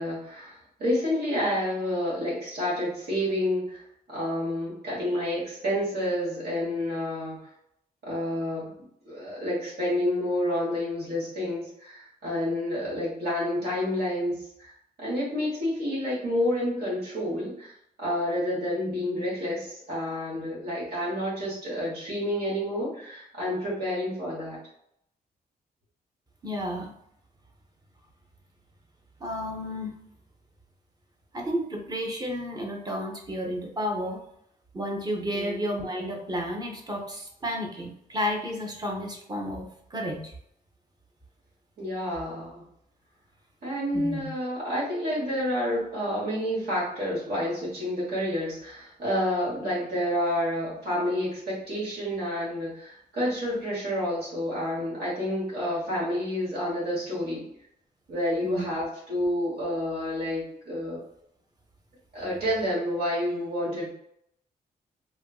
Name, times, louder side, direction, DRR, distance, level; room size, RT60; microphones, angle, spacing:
voice 1, 0.0-7.4 8.0-8.7 9.0-14.7 15.0-24.6 35.3-35.5 41.8-42.6 43.6-57.4 58.1-61.0 62.1-63.9, left 1 dB, 75° right, -7 dB, 1.3 m, -29 dB
voice 2, 26.4-26.9 29.2-29.9 31.3-34.2 34.7-40.3 43.9-44.3 58.4-58.7, equal, 25° right, 1 dB, 0.6 m, -32 dB
2.9 x 2.4 x 2.3 m, 0.74 s
wide cardioid pair, 115°, 17 cm